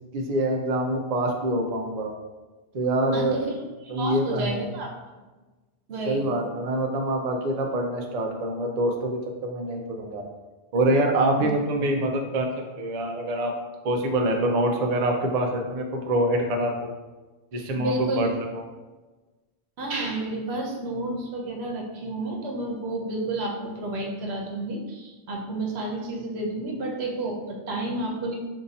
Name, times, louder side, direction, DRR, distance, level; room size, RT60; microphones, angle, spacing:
voice 1, 0.1-2.1 2.7-3.4 3.9-4.7 6.1-10.2 10.7-12.5 12.8-13.5 13.8-16.9 17.5-18.3 18.5-18.6, right 1 dB, 55° right, 2 dB, 0.4 m, -25 dB
voice 2, 3.1-4.9 5.9-6.3 11.4-11.5 17.7-18.3 19.8-28.4, right 2 dB, 80° right, -1 dB, 1.0 m, -31 dB
2.7 x 2.6 x 4.0 m, 1.2 s
omnidirectional pair, 1.1 m